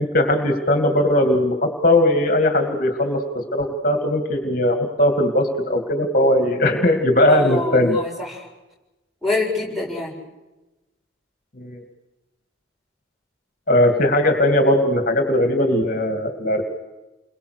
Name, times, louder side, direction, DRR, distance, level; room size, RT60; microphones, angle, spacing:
voice 1, 0.0-8.0 11.6-11.8 13.7-16.6, left 1 dB, 40° left, 4 dB, 2.5 m, -19 dB
voice 2, 7.3-8.4 9.2-10.1, left 2 dB, ahead, -2 dB, 7.4 m, -25 dB
30.0 x 23.0 x 6.7 m, 1.1 s
head